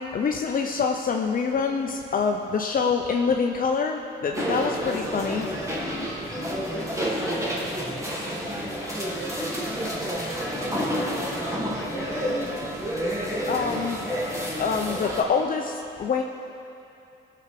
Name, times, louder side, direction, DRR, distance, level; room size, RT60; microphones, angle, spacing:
voice 1, 0.0-5.5 5.8-6.1 13.5-14.0 14.6-16.2, left 5 dB, 45° left, 3 dB, 0.7 m, -26 dB
sound 1, 4.3-15.2, equal, 15° right, 2.1 m, -29 dB
voice 2, 6.6-7.8 8.3-12.6 13.7-14.0, left 2 dB, 5° left, -3 dB, 1.9 m, -42 dB
18.0 x 6.9 x 5.2 m, 2.7 s
cardioid pair, 90°, 20 cm